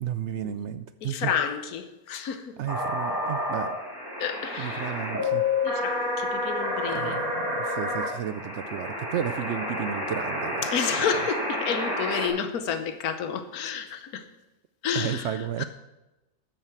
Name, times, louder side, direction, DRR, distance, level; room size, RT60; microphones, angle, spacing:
voice 1, 0.0-1.3 2.6-3.8 4.6-5.4 6.9-10.7 10.9-11.0 14.9-15.6, right 10 dB, 70° right, 0.6 m, -33 dB
voice 2, 1.0-2.4 4.2-4.8 5.6-7.2 10.7-14.2 14.8-15.2, left 7 dB, 70° left, 1.4 m, -30 dB
sound 1, 2.7-12.3, left 2 dB, 15° left, 2.6 m, -29 dB
13.0 x 7.3 x 6.0 m
omnidirectional pair, 1.6 m